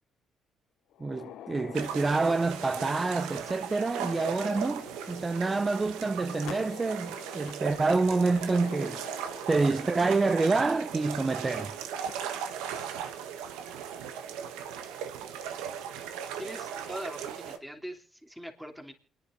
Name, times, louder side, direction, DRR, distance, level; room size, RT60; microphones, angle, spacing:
sound 1, 0.9-11.7 12.0-12.1 12.9-13.0 13.5-13.6 15.0-15.2, left 11 dB, 75° left, 0.6 m, -48 dB
voice 1, 1.0-9.0 9.5-11.7, right 3 dB, 30° right, 0.5 m, -27 dB
sound 2, 1.7-17.6, right 8 dB, 85° right, 1.2 m, -38 dB
voice 2, 16.4-18.9, equal, 5° right, 3.1 m, -41 dB
28.0 x 10.5 x 2.6 m
supercardioid pair, 60°, 0 cm